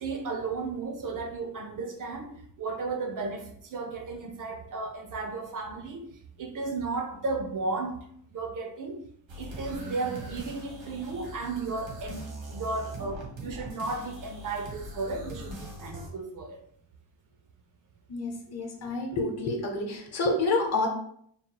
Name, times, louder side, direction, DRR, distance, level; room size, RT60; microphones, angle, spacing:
voice 1, 0.0-2.3 2.6-6.1 6.4-8.0 8.3-9.0 9.4-16.6, right 3 dB, 45° right, 4 dB, 0.7 m, -34 dB
sound 1, 9.3-16.1, right 1 dB, 80° right, 1.5 m, -41 dB
voice 2, 18.1-20.9, left 2 dB, 35° left, 1 dB, 1.0 m, -28 dB
3.8 x 2.2 x 4.5 m, 0.66 s
cardioid pair, 135°, 45 cm